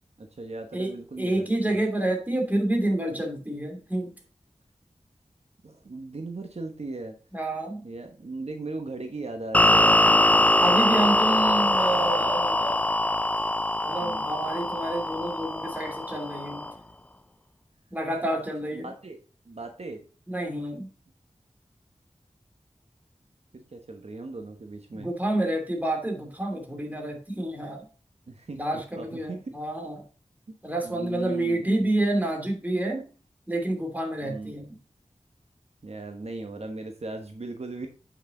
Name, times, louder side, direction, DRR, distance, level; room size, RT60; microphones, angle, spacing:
voice 1, 0.2-1.8 5.6-7.2 7.8-10.3 10.8-10.9 14.0-14.3 18.7-19.2 19.4-20.0 23.5-25.1 28.3-29.5 30.5-30.6 30.8-31.8 34.2-34.6 35.8-37.9, right 2 dB, 65° right, 5 dB, 1.1 m, -38 dB
voice 2, 0.7-4.1 7.3-7.8 10.6-12.9 13.8-16.7 17.9-18.9 20.3-20.9 25.0-27.8 28.5-30.0 30.6-33.0 33.5-34.8, right 1 dB, 15° right, 2 dB, 2.7 m, -28 dB
sound 1, 9.5-16.7, left 1 dB, 10° left, 0.4 m, -22 dB
8.0 x 6.1 x 3.8 m, 0.37 s
wide cardioid pair, 75°, 12 cm